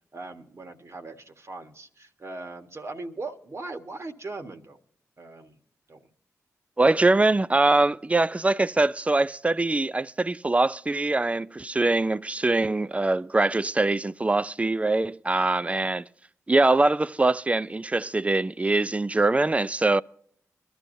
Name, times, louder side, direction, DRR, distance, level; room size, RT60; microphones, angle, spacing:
voice 1, 0.1-4.8 5.2-5.6 5.9-6.0 15.6-15.8, right 3 dB, 50° right, 1.5 m, -39 dB
voice 2, 6.8-16.1 16.5-20.0, right 2 dB, 20° right, 0.5 m, -23 dB
22.5 x 12.5 x 2.7 m
cardioid pair, 50°, 6 cm